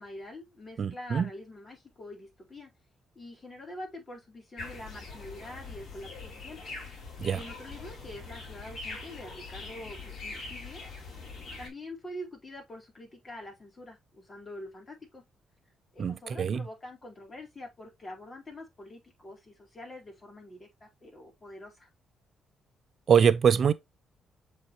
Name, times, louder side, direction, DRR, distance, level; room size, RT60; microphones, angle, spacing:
voice 1, 0.0-2.7 3.1-6.6 7.3-10.8 11.6-15.2 15.9-21.9, left 1 dB, 30° left, 4.2 m, -45 dB
voice 2, 0.8-1.3 7.2-7.4 16.0-16.6 23.1-23.7, right 7 dB, 50° right, 0.5 m, -23 dB
sound 1, 4.6-11.7, left 3 dB, 55° left, 2.9 m, -43 dB
7.2 x 4.4 x 3.1 m
cardioid pair, 95°, 0 cm